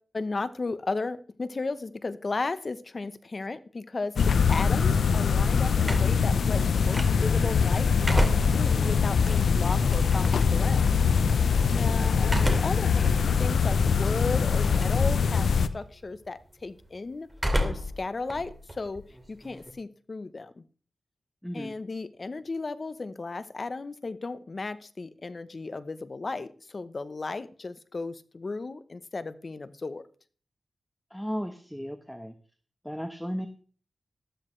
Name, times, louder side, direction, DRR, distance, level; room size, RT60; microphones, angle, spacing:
voice 1, 0.0-10.8 11.7-17.3 17.6-19.0 19.3-20.6 21.5-30.0, left 3 dB, 50° left, 13 dB, 0.9 m, -35 dB
sound 1, 4.2-15.7, left 6 dB, 90° left, 0.6 m, -23 dB
sound 2, 5.8-7.4 7.8-10.4 12.2-12.9 13.4-13.5 14.6-15.0 15.3-15.8 17.3-18.0 18.3-19.7, equal, 20° right, 2.6 m, -30 dB
voice 2, 21.4-21.8 31.1-32.3 32.8-33.5, equal, ahead, 9 dB, 1.1 m, -35 dB
13.0 x 12.5 x 3.2 m, 0.43 s
cardioid pair, 50°, 0 cm